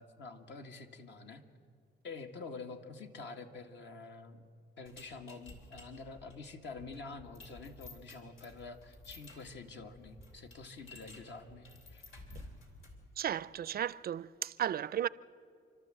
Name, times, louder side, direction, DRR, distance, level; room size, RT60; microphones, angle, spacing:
voice 1, 0.0-1.4 2.0-4.5 4.8-12.0, left 3 dB, 65° left, 1.9 m, -47 dB
sound 1, 4.8-13.1, left 2 dB, 85° left, 3.3 m, -54 dB
voice 2, 13.2-15.1, right 10 dB, 50° right, 0.4 m, -34 dB
28.5 x 12.5 x 7.7 m
cardioid pair, 90°, 20 cm